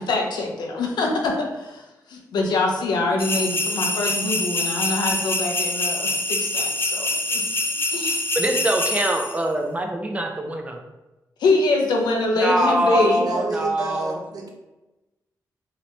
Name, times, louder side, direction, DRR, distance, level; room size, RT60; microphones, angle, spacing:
voice 1, 0.0-8.2 11.4-13.3, left 2 dB, 85° left, 1 dB, 0.6 m, -24 dB
sound 1, 3.2-9.4, left 2 dB, 35° left, 0.5 m, -25 dB
voice 2, 8.3-10.8 12.4-14.2, right 1 dB, 20° right, 3 dB, 0.6 m, -23 dB
voice 3, 12.5-14.5, right 3 dB, 65° right, 0 dB, 0.7 m, -31 dB
2.8 x 2.7 x 3.2 m, 1.0 s
cardioid pair, 65°, 7 cm